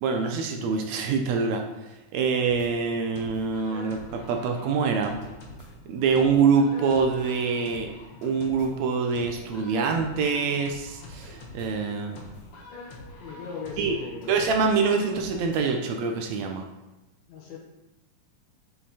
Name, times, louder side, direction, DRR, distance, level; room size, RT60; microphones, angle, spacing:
voice 1, 0.0-1.6 2.1-5.2 5.9-7.9 8.2-12.2 13.8-13.9 14.3-16.6, right 5 dB, 75° right, 3 dB, 1.7 m, -25 dB
sound 1, 2.5-15.7, left 2 dB, 50° left, 1.9 m, -45 dB
voice 2, 13.2-14.4 17.3-17.6, left 5 dB, 65° left, -3 dB, 2.1 m, -38 dB
7.2 x 6.0 x 4.2 m, 0.99 s
omnidirectional pair, 3.8 m